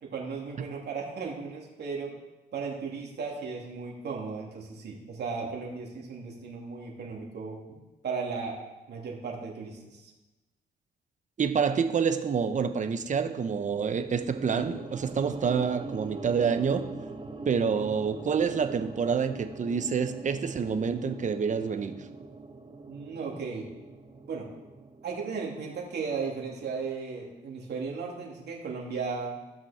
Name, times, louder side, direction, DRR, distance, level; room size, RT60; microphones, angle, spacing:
voice 1, 0.0-2.1 2.5-7.6 8.0-8.6 8.9-10.1 22.9-23.7 24.3-24.5 25.0-29.4, right 5 dB, 65° right, -2 dB, 2.7 m, -35 dB
voice 2, 11.4-16.9 17.5-22.1, right 6 dB, 45° right, 9 dB, 0.9 m, -27 dB
sound 1, 13.9-26.1, right 3 dB, 30° right, 1.3 m, -43 dB
15.5 x 6.0 x 4.4 m, 1.1 s
cardioid pair, 85°, 18 cm